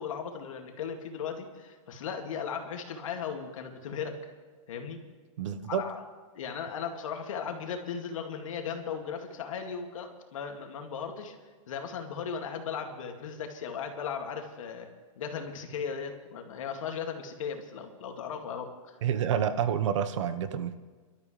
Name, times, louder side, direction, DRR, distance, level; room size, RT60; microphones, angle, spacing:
voice 1, 0.0-4.2 4.7-5.0 5.7-6.1 6.3-11.4 11.7-14.9 15.2-19.0, left 6 dB, 70° left, 4 dB, 2.2 m, -37 dB
voice 2, 5.4-5.8 19.0-20.7, right 8 dB, 60° right, 11 dB, 1.0 m, -28 dB
27.5 x 13.0 x 3.3 m, 1.4 s
supercardioid pair, 170°, 17 cm